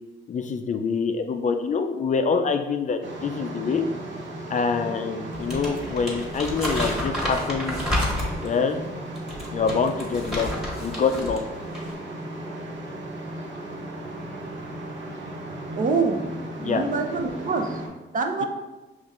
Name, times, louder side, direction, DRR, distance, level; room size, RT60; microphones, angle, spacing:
voice 1, 0.3-3.9 4.5-7.8 8.4-8.8 9.5-10.5 10.8-11.4 16.6-16.8, left 5 dB, 40° left, 6 dB, 0.4 m, -25 dB
sound 1, 3.0-17.9, right 1 dB, 70° right, 0.9 m, -36 dB
Crumpling crinkling, 5.3-8.6 9.2-11.4 11.7-11.9, equal, ahead, 1.3 m, -30 dB
voice 2, 15.8-16.2 16.6-17.8 18.1-18.5, right 4 dB, 40° right, 5 dB, 0.5 m, -25 dB
5.3 x 3.1 x 2.4 m, 1.1 s
cardioid pair, 90°, 20 cm